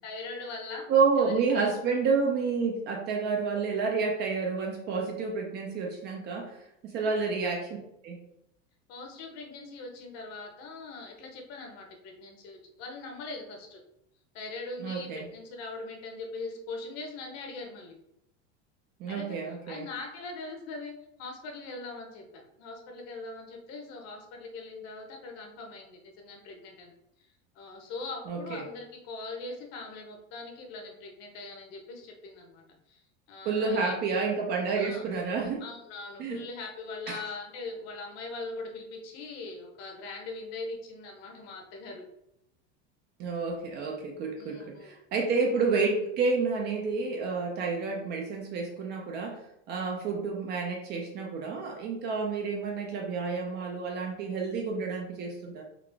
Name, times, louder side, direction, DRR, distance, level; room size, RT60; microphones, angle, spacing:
voice 1, 0.0-0.9 1.2-1.7 7.0-7.1 8.9-13.8 14.3-18.0 19.1-19.4 19.7-20.9 21.2-26.9 27.5-33.0 33.3-34.2 34.8-35.0 35.6-42.1 44.4-44.9, left 3 dB, 45° left, 2 dB, 0.8 m, -41 dB
voice 2, 0.9-7.8 8.0-8.2 14.8-15.3 19.0-19.9 28.3-28.7 33.4-35.6 36.2-36.4 37.1-37.2 43.2-49.4 49.7-55.6, right 4 dB, 30° right, 1 dB, 0.4 m, -29 dB
3.8 x 2.4 x 3.3 m, 0.81 s
supercardioid pair, 150°, 36 cm